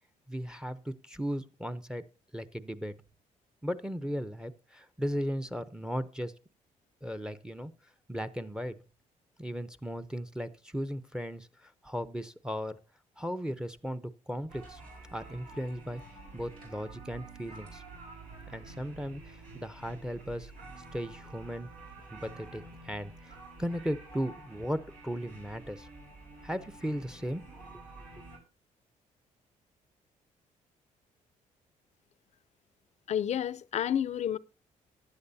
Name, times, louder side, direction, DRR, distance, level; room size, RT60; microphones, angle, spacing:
voice 1, 0.3-2.1 2.3-3.0 3.6-6.3 7.0-7.7 8.1-8.8 9.4-12.8 13.2-14.8 15.1-16.0 16.3-17.8 18.5-20.5 20.9-21.7 22.1-25.9 26.4-27.5 27.7-27.8, equal, 5° right, 0.6 m, -36 dB
sound 1, 14.5-28.4, right 2 dB, 90° right, 4.6 m, -49 dB
voice 2, 33.1-34.4, left 9 dB, 55° left, 0.5 m, -30 dB
15.5 x 10.5 x 2.7 m
cardioid pair, 95°, 14 cm